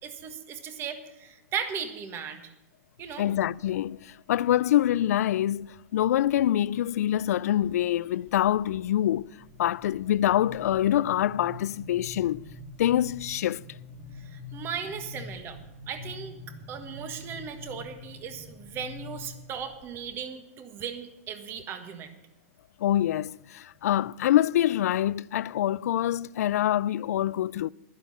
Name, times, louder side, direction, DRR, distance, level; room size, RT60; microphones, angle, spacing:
voice 1, 0.0-2.5 3.0-3.3 14.2-15.6 15.9-16.4 16.7-22.1, right 7 dB, 30° right, 1.5 m, -37 dB
voice 2, 3.2-9.3 9.6-12.4 12.8-13.6 22.8-27.7, left 12 dB, 75° left, 0.3 m, -25 dB
sound 1, 3.6-3.9 4.4-5.0 5.6-6.5 6.9-7.2 7.6-20.1, left 2 dB, 50° right, 3.0 m, -45 dB
11.5 x 11.5 x 5.6 m
hypercardioid pair, 140°, 8 cm